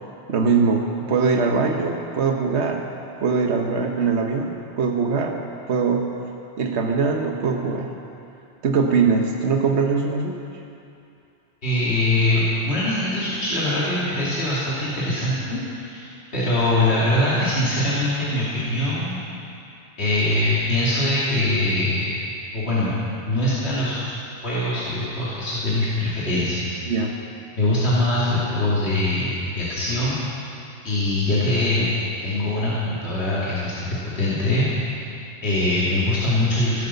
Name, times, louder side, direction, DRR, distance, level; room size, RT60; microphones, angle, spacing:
voice 1, 0.3-2.8 3.2-5.4 5.7-6.2 6.6-7.9 8.6-10.4 26.9-27.2, right 5 dB, 80° right, 2 dB, 1.3 m, -22 dB
voice 2, 11.6-16.1 16.3-19.2 20.0-22.1 22.5-22.9 23.3-24.2 24.4-26.8 27.6-30.5 30.8-31.9 32.2-35.0 35.4-36.9, left 1 dB, 70° left, -9 dB, 2.8 m, -22 dB
16.5 x 10.5 x 6.9 m, 2.6 s
omnidirectional pair, 1.1 m